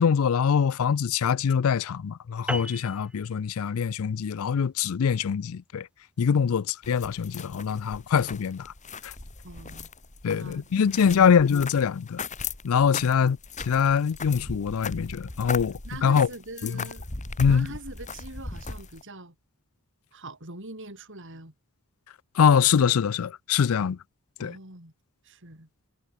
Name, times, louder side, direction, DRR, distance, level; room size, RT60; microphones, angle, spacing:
voice 1, 0.0-5.9 6.2-8.7 10.2-12.2 12.6-13.4 13.7-16.3 16.6-16.7 17.4-17.7 22.4-24.0 24.4-24.5, left 7 dB, 70° left, 0.4 m, -23 dB
sound 1, 2.5-7.2, right 1 dB, 5° right, 7.6 m, -40 dB
sound 2, 6.8-19.0, left 4 dB, 35° left, 2.3 m, -38 dB
voice 2, 9.4-9.9 10.3-11.3 15.8-17.1 17.4-19.4 20.1-21.5 24.4-24.9 25.2-25.7, right 2 dB, 60° right, 7.2 m, -43 dB
head